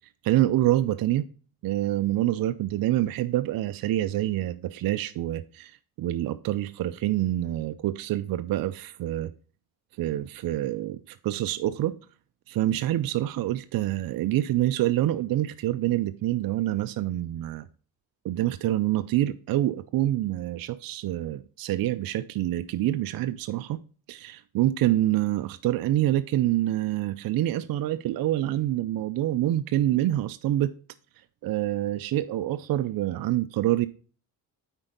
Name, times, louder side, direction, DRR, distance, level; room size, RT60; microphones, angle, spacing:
voice 1, 0.2-1.3 1.6-9.3 10.0-11.9 12.5-17.7 18.2-23.8 24.1-30.7 31.4-33.9, right 14 dB, 50° right, 0.5 m, -26 dB
8.8 x 4.5 x 3.8 m
supercardioid pair, 65°, 44 cm